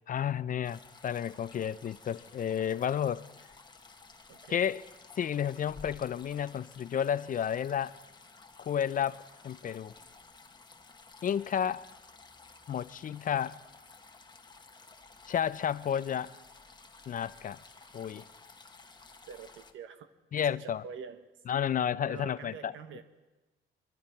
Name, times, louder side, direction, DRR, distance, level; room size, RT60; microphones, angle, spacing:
voice 1, 0.1-3.2 4.5-4.8 5.2-7.9 8.6-9.9 11.2-11.9 12.7-13.6 15.3-16.3 17.1-17.6 17.9-18.2 20.3-20.8 21.5-22.7, left 9 dB, 45° left, 0.4 m, -31 dB
sound 1, 0.6-19.7, left 4 dB, 20° left, 1.1 m, -54 dB
voice 2, 4.3-4.6 19.3-20.1 20.4-21.3 21.8-23.0, right 6 dB, 85° right, 1.1 m, -46 dB
23.0 x 14.0 x 4.4 m
cardioid pair, 90°, 20 cm